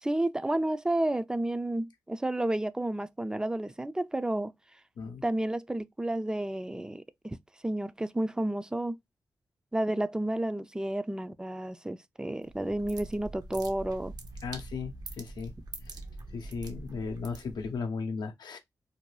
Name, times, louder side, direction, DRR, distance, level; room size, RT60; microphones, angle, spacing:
voice 1, 0.0-4.5 5.2-7.4 7.6-9.0 9.7-14.1, right 1 dB, 10° right, 0.3 m, -31 dB
sound 1, 12.4-17.8, right 2 dB, 65° right, 0.7 m, -44 dB
voice 2, 14.4-15.5 16.3-18.6, left 5 dB, 80° left, 0.6 m, -36 dB
2.6 x 2.2 x 3.0 m
cardioid pair, 50°, 7 cm